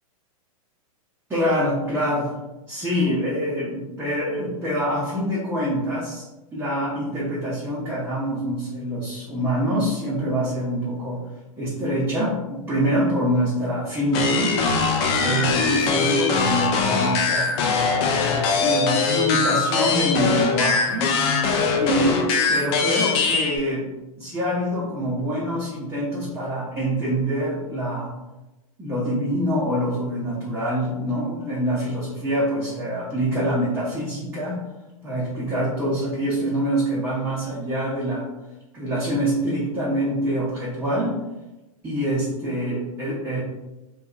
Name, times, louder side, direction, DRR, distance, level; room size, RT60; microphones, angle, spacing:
voice 1, 1.3-2.3 2.7-6.2 6.5-11.2 11.6-14.6 15.2-17.6 18.3-21.1 21.8-22.2 22.5-23.9 24.2-28.1 28.8-34.6 35.0-38.3 38.7-41.1 41.8-43.4, equal, 10° right, -9 dB, 0.7 m, -25 dB
sound 1, 14.1-23.6, left 4 dB, 45° left, 0.4 m, -21 dB
2.6 x 2.3 x 2.4 m, 1.0 s
hypercardioid pair, 120°, 19 cm